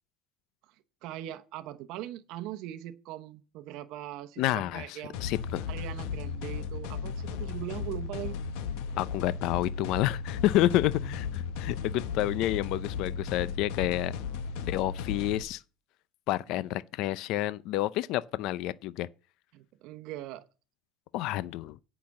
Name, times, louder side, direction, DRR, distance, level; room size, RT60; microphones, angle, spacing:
voice 1, 0.7-5.2 5.7-8.4 16.5-16.6 19.5-20.4, right 13 dB, 60° right, 0.9 m, -41 dB
voice 2, 4.4-5.6 9.0-14.1 14.7-15.6 16.3-19.1 21.1-21.8, left 15 dB, 60° left, 0.5 m, -29 dB
sound 1, 5.1-15.4, left 6 dB, 75° left, 1.2 m, -35 dB
8.7 x 5.9 x 7.1 m
cardioid pair, 145°, 0 cm